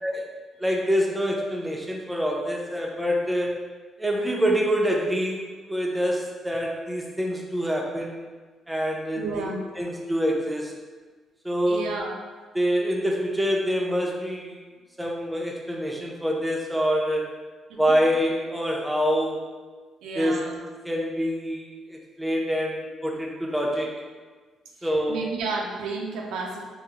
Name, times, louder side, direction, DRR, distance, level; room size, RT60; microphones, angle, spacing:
voice 1, 0.6-3.6 4.0-8.2 8.7-9.5 9.8-10.7 11.4-11.8 12.5-14.6 15.0-17.4 17.7-19.5 20.2-20.4 20.9-23.9 24.8-25.2, equal, 10° right, -1 dB, 0.5 m, -26 dB
voice 2, 9.1-9.6 11.7-12.3 17.7-17.8 20.0-20.6 24.8-26.6, right 3 dB, 90° right, 0 dB, 0.3 m, -32 dB
3.6 x 2.0 x 2.8 m, 1.4 s
cardioid pair, 90°, 0 cm